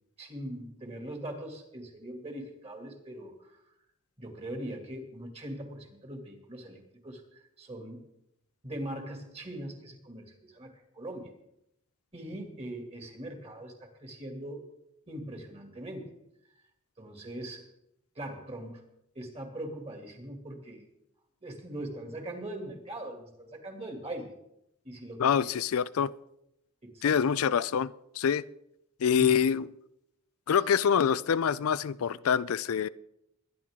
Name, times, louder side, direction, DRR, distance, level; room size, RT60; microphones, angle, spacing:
voice 1, 0.2-3.6 4.2-8.0 8.6-11.3 12.1-14.6 15.1-16.1 17.0-17.7 18.2-18.8 19.1-20.9 21.4-24.3 24.8-25.3 26.8-27.2 29.1-29.3 30.5-30.6, right 1 dB, 25° right, 2.5 m, -41 dB
voice 2, 25.2-26.1 27.0-28.4 29.0-29.7 30.5-32.9, left 7 dB, 75° left, 0.4 m, -26 dB
22.0 x 10.5 x 3.7 m
head